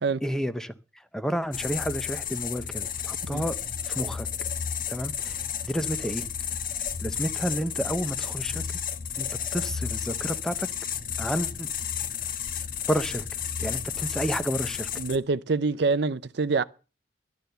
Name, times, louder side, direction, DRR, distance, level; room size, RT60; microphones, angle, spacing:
voice 1, 0.2-3.6 3.8-4.3 4.9-6.3 7.0-8.8 9.2-9.3 9.5-10.7 11.2-11.7 12.9-13.3 13.6-14.9, equal, 5° left, 0.7 m, -31 dB
sound 1, 1.5-15.2, left 8 dB, 45° left, 1.1 m, -32 dB
voice 2, 15.0-16.6, right 4 dB, 60° right, 0.6 m, -25 dB
12.0 x 11.5 x 6.7 m
head